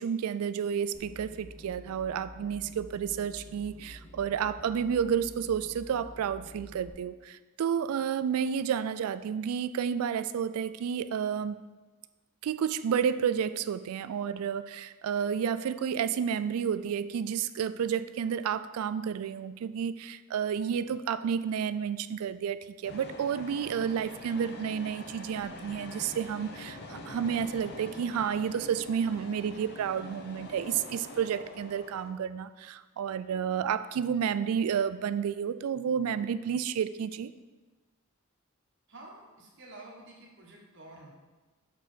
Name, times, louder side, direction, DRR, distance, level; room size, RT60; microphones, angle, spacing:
voice 1, 0.0-11.7 12.4-37.3, right 7 dB, 85° right, 14 dB, 0.3 m, -31 dB
sound 1, 0.9-6.9, equal, 10° left, 0.8 m, -49 dB
sound 2, 22.8-32.1, left 2 dB, 50° left, 0.8 m, -45 dB
voice 2, 38.9-41.1, right 2 dB, 60° right, -3 dB, 1.4 m, -49 dB
6.8 x 4.8 x 4.5 m, 1.2 s
head